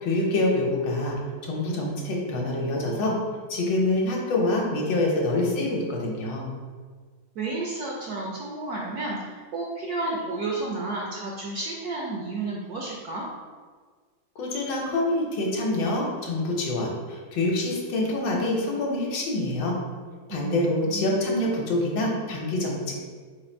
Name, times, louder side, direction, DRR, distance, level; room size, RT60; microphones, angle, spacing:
voice 1, 0.0-3.2 3.5-6.4 14.4-19.8 20.3-22.9, left 2 dB, 70° left, -1 dB, 1.4 m, -26 dB
voice 2, 7.3-13.3 20.3-21.4, right 3 dB, 70° right, -3 dB, 0.9 m, -32 dB
4.2 x 2.5 x 4.3 m, 1.5 s
omnidirectional pair, 2.1 m